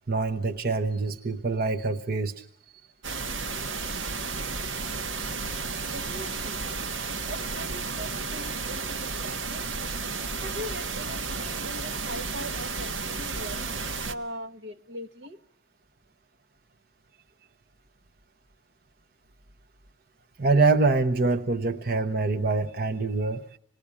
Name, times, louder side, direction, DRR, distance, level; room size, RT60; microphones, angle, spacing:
voice 1, 0.1-2.4 20.4-23.5, right 3 dB, 50° right, 5 dB, 0.9 m, -25 dB
sound 1, 3.0-14.1, right 4 dB, 85° right, 1.3 m, -32 dB
voice 2, 5.8-6.7 7.2-9.7 10.4-13.7 14.0-15.4, equal, 70° right, 9 dB, 1.2 m, -40 dB
27.5 x 20.0 x 8.5 m, 0.69 s
head